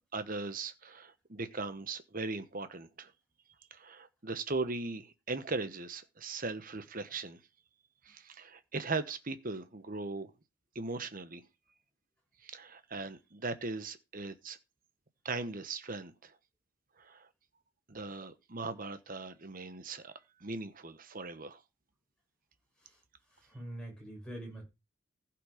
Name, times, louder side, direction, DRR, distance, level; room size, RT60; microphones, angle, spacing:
voice 1, 0.1-3.1 3.7-7.4 8.0-10.3 10.7-11.4 12.4-14.6 15.2-16.3 17.0-17.3 17.9-20.1 20.4-21.6, right 3 dB, 40° right, 1.1 m, -39 dB
voice 2, 23.3-24.6, right 1 dB, 5° left, 6.8 m, -45 dB
15.5 x 5.9 x 5.0 m
head